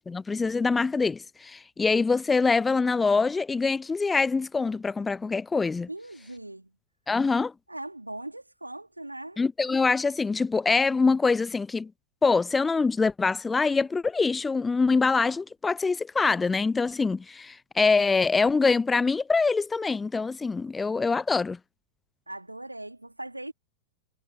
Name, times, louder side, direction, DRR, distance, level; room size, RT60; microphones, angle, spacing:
voice 1, 0.0-5.9 7.1-7.5 9.4-11.9 12.2-21.6, left 4 dB, 15° left, 0.4 m, -24 dB
voice 2, 5.9-6.7 7.7-9.4 22.3-23.5, right 1 dB, 85° right, 4.0 m, -39 dB
figure-of-eight pair, 90°, 0 cm